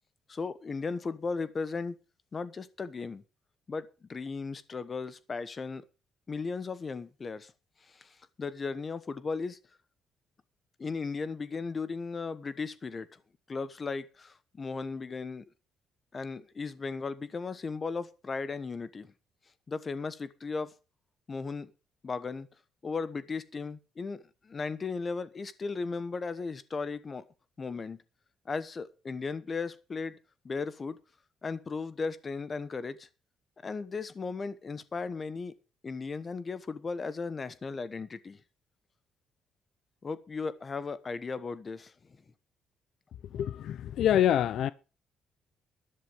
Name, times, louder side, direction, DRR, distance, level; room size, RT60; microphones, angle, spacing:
voice 1, 0.3-2.0 2.3-3.2 3.7-5.8 6.3-7.5 7.8-9.6 10.8-13.2 13.5-15.4 16.1-19.1 19.7-20.7 21.3-21.7 22.0-22.5 22.8-27.2 27.6-28.0 28.4-30.2 30.4-31.0 31.4-33.1 33.6-35.5 35.8-38.4 40.0-42.2, left 4 dB, 25° left, 1.0 m, -36 dB
voice 2, 43.3-44.7, left 10 dB, 60° left, 0.6 m, -26 dB
13.0 x 11.0 x 5.0 m
cardioid pair, 170°, 0 cm